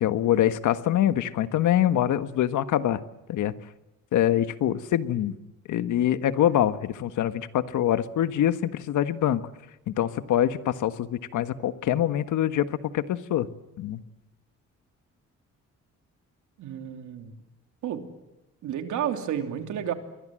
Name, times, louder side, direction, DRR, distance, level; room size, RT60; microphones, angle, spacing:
voice 1, 0.0-3.0 3.3-3.5 4.1-5.4 5.7-9.4 9.9-12.7 12.9-13.5 13.8-14.0, left 11 dB, 80° left, 11 dB, 1.5 m, -24 dB
voice 2, 16.6-17.4 17.8-18.2 18.6-19.9, right 9 dB, 80° right, 6 dB, 3.1 m, -31 dB
28.5 x 23.0 x 7.7 m, 0.97 s
cardioid pair, 90°, 30 cm